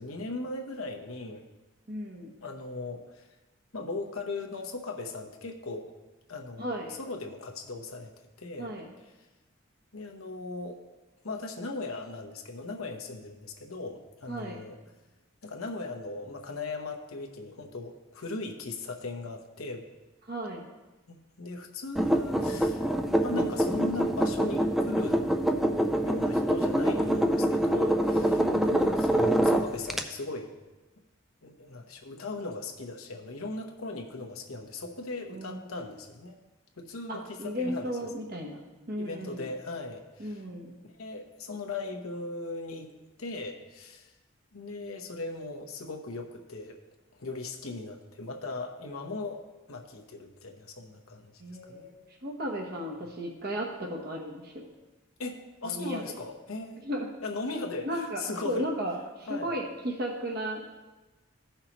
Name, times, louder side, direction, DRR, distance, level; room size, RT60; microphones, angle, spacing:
voice 1, 0.0-1.4 2.4-3.3 3.7-5.9 6.3-6.7 7.0-8.1 8.4-8.7 9.9-10.8 11.2-14.8 15.4-19.9 21.1-22.9 23.2-25.2 26.0-30.5 31.4-36.4 36.8-37.9 39.0-40.4 40.9-42.9 43.2-44.1 44.5-46.8 47.1-51.3 51.7-51.9 55.2-56.9 57.2-58.7 59.3-59.5, left 3 dB, 85° left, 3 dB, 1.0 m, -38 dB
voice 2, 1.9-2.4 6.6-7.0 8.6-8.9 14.3-14.6 20.3-20.7 28.4-29.0 35.3-35.9 37.1-39.5 40.2-40.8 51.4-54.7 55.6-56.1 56.8-57.1 57.8-60.7, equal, 45° right, 0 dB, 1.0 m, -35 dB
sound 1, 22.0-30.0, right 1 dB, ahead, 0.3 m, -25 dB
15.0 x 5.7 x 3.0 m, 1.1 s
head